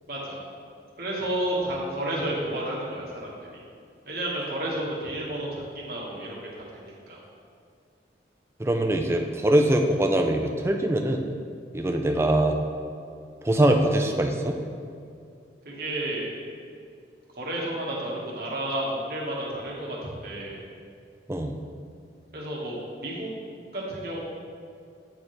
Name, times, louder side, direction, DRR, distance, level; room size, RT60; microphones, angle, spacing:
voice 1, 0.1-0.4 1.0-3.6 4.0-6.6 7.1-7.2 15.6-16.3 17.4-20.0 20.2-20.6 22.3-22.8 23.0-23.3 23.7-24.2, right 1 dB, 55° right, -4 dB, 1.4 m, -31 dB
voice 2, 8.6-11.2 11.7-12.6 13.4-14.6 21.3-21.5, right 1 dB, 15° right, 3 dB, 0.4 m, -23 dB
9.0 x 4.3 x 3.2 m, 2.4 s
head